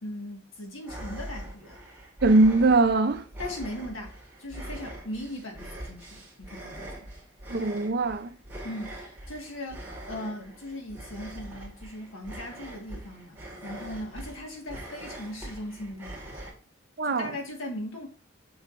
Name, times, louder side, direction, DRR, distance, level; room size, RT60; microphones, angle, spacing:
voice 1, 0.0-1.8 3.4-7.1 8.6-16.3 17.0-18.1, left 1 dB, 75° left, 1.6 m, -39 dB
sound 1, 0.8-16.5, right 1 dB, 10° right, 2.0 m, -42 dB
voice 2, 2.2-3.2 7.5-8.3 17.0-17.3, right 2 dB, 50° right, 0.5 m, -21 dB
7.2 x 5.8 x 2.5 m
head